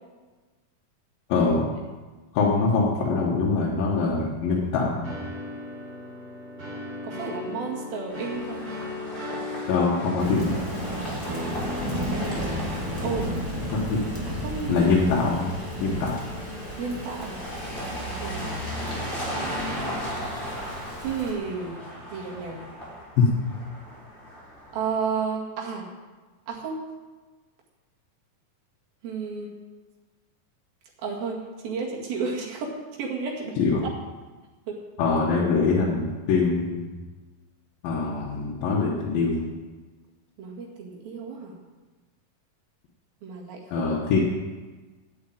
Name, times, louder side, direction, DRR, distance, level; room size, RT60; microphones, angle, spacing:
voice 1, 1.3-1.7 2.3-5.1 9.7-10.6 13.7-14.0 14.7-15.5 15.8-16.2 23.2-23.3 33.6-33.9 35.0-36.9 37.8-39.5 43.7-44.2, left 4 dB, 75° left, -4 dB, 3.1 m, -23 dB
sound 1, 5.0-13.3, left 2 dB, 35° right, 4.3 m, -37 dB
voice 2, 7.0-8.6 11.1-11.4 13.0-13.3 14.3-14.9 16.8-17.4 18.2-18.7 21.0-21.8 22.1-22.6 24.7-25.9 26.5-26.8 29.0-29.5 31.0-33.6 34.7-34.8 40.4-41.6 43.2-43.9, right 5 dB, 80° right, -2 dB, 4.0 m, -32 dB
sound 2, 8.1-25.1, equal, 15° left, 4.1 m, -36 dB
Thunder / Rain, 10.2-21.3, equal, 10° right, 1.5 m, -34 dB
9.8 x 8.8 x 8.9 m, 1.3 s
omnidirectional pair, 4.1 m